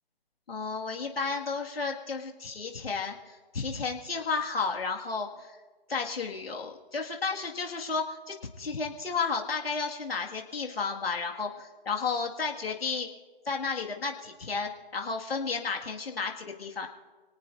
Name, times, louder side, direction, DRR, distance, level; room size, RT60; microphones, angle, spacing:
voice 1, 0.5-5.5 5.9-13.1 13.5-16.9, left 4 dB, 75° left, 1 dB, 2.0 m, -32 dB
27.5 x 18.5 x 2.6 m, 1.3 s
hypercardioid pair, 160°, 30 cm